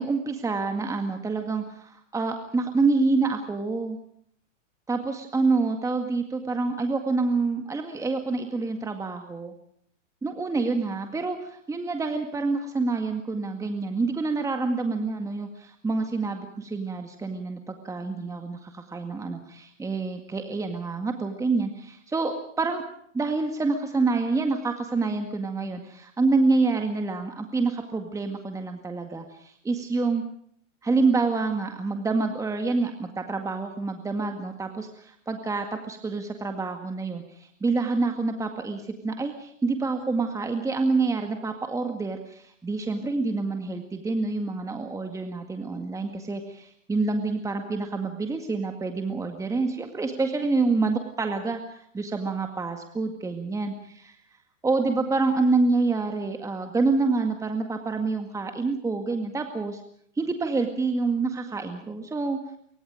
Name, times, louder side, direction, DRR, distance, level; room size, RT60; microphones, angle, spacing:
voice 1, 0.0-4.0 4.9-9.5 10.2-22.8 23.1-30.2 30.8-54.2 54.6-59.8 60.2-62.4, right 3 dB, 10° right, 5 dB, 2.0 m, -27 dB
27.5 x 24.0 x 5.1 m, 0.65 s
hypercardioid pair, 130°, 38 cm